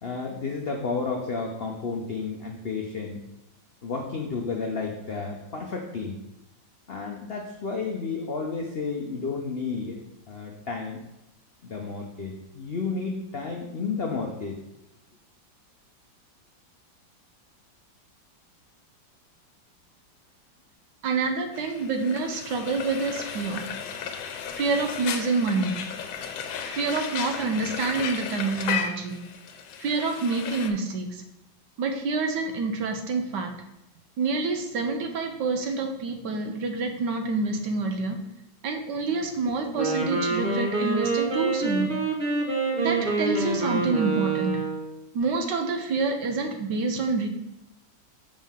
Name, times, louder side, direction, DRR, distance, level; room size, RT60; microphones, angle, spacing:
voice 1, 0.0-3.2 3.8-6.2 6.9-10.0 10.3-11.0 11.6-14.5, left 4 dB, 70° left, 1 dB, 0.5 m, -32 dB
voice 2, 21.0-23.7 24.5-25.7 26.6-29.2 29.8-31.2 31.8-33.5 34.2-38.2 38.6-41.9 42.8-44.6 45.1-47.3, right 3 dB, 70° right, 5 dB, 1.3 m, -27 dB
Frying (food), 21.5-30.7, left 7 dB, 90° left, 1.4 m, -34 dB
Wind instrument woodwind instrument, 39.6-44.9, right 3 dB, 30° right, 1.1 m, -26 dB
7.4 x 5.2 x 3.6 m, 0.91 s
omnidirectional pair, 2.1 m